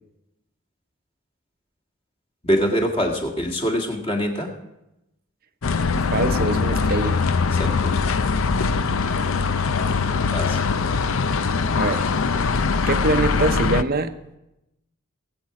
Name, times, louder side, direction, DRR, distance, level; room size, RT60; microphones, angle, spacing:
voice 1, 2.4-4.5 7.5-8.0 10.3-10.6 13.2-13.3, equal, 30° left, 1 dB, 1.9 m, -24 dB
sound 1, 5.6-13.8, left 4 dB, 70° left, 0.6 m, -22 dB
voice 2, 6.1-7.2 11.7-12.1 12.9-14.2, right 2 dB, 45° right, 9 dB, 0.8 m, -23 dB
19.5 x 8.2 x 4.8 m, 0.91 s
head